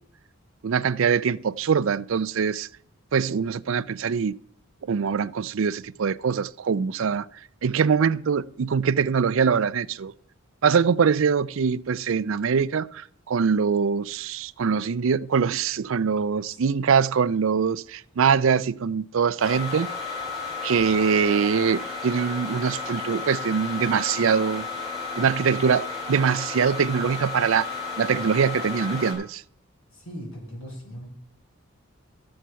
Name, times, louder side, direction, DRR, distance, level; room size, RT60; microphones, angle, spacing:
voice 1, 0.6-2.7 3.1-4.3 4.9-7.3 7.6-10.1 10.6-19.9 20.6-24.7 25.2-27.7 28.0-29.4, right 6 dB, 70° right, 0.4 m, -23 dB
voice 2, 16.2-16.6 29.9-31.1, equal, 80° left, 4.2 m, -40 dB
sound 1, 19.4-29.1, left 4 dB, 20° left, 5.1 m, -33 dB
13.0 x 7.7 x 5.6 m
head